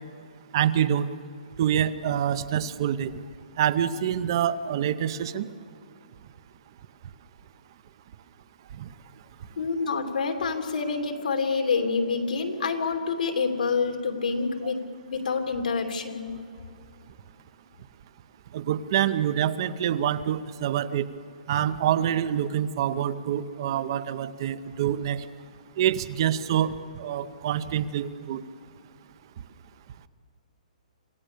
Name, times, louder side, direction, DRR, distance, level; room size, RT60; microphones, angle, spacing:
voice 1, 0.5-1.1 1.6-3.1 3.6-5.5 8.8-8.9 18.5-21.1 21.5-25.2 25.8-28.4, right 10 dB, 35° right, 14 dB, 0.7 m, -26 dB
voice 2, 9.6-16.3, left 4 dB, 80° left, 4 dB, 3.0 m, -27 dB
27.0 x 16.5 x 6.8 m, 2.6 s
hypercardioid pair, 170°, 4 cm